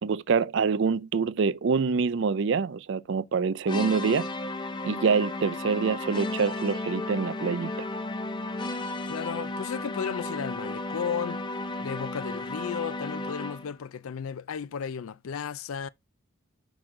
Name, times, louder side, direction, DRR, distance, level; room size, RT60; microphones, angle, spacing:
voice 1, 0.0-4.3 4.8-7.7, right 5 dB, 60° right, 0.4 m, -26 dB
sound 1, 3.7-13.8, left 2 dB, 20° left, 0.6 m, -34 dB
voice 2, 9.1-11.4 11.8-15.9, left 7 dB, 85° left, 0.4 m, -34 dB
6.0 x 4.9 x 3.7 m
head